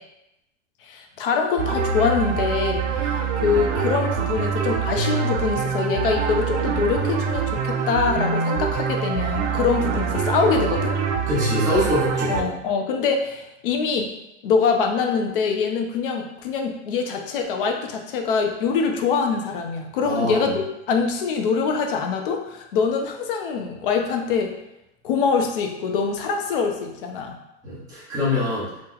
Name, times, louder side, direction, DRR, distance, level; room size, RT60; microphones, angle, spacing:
voice 1, 0.8-10.9 12.3-14.1 14.4-24.5 25.0-27.4, left 5 dB, 50° left, 3 dB, 0.5 m, -24 dB
sound 1, 1.6-12.4, right 6 dB, 75° right, 0.5 m, -24 dB
voice 2, 11.3-12.5 20.0-20.5 27.6-28.7, left 1 dB, 10° right, -9 dB, 0.7 m, -24 dB
2.9 x 2.1 x 3.7 m, 0.88 s
supercardioid pair, 170°, 36 cm